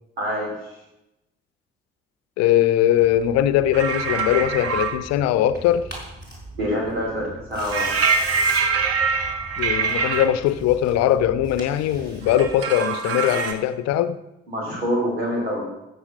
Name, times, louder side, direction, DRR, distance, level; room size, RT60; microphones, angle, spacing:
voice 1, 0.2-0.5 6.5-7.9 14.5-15.6, equal, 85° right, -1 dB, 2.9 m, -25 dB
voice 2, 2.4-5.9 9.6-14.2, left 11 dB, 60° left, 14 dB, 0.7 m, -20 dB
Tearing, 3.0-12.6, right 1 dB, 35° right, 5.2 m, -40 dB
sound 1, 3.7-4.9 7.7-10.2 12.2-13.5, right 5 dB, 50° right, 1.5 m, -23 dB
14.5 x 8.0 x 5.5 m, 0.92 s
figure-of-eight pair, 40°, 30 cm